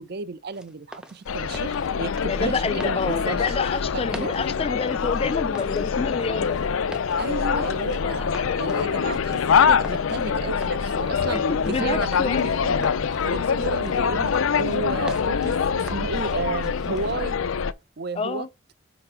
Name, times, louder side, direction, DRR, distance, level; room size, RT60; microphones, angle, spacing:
voice 1, 0.0-3.4 4.1-4.3 7.2-11.4 11.7-12.9 13.2-17.4 18.0-18.5, right 4 dB, 50° right, 0.5 m, -33 dB
sound 1, 0.5-17.1, right 1 dB, 5° right, 0.6 m, -45 dB
sound 2, 1.3-17.7, left 6 dB, 85° left, 0.5 m, -24 dB
voice 2, 2.3-6.6 11.3-12.5 18.2-18.5, left 4 dB, 30° left, 0.3 m, -28 dB
5.0 x 4.1 x 5.4 m
head